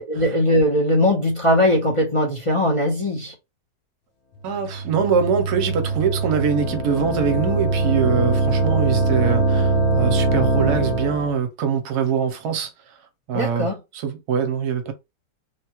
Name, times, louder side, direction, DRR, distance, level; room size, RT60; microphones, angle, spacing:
voice 1, 0.0-3.3 13.3-13.8, left 1 dB, 40° left, 0.4 m, -20 dB
voice 2, 4.4-12.7 13.3-14.9, right 6 dB, 70° right, 1.1 m, -23 dB
sound 1, 4.5-11.3, right 3 dB, 60° left, 0.9 m, -22 dB
3.4 x 2.2 x 2.9 m
omnidirectional pair, 1.9 m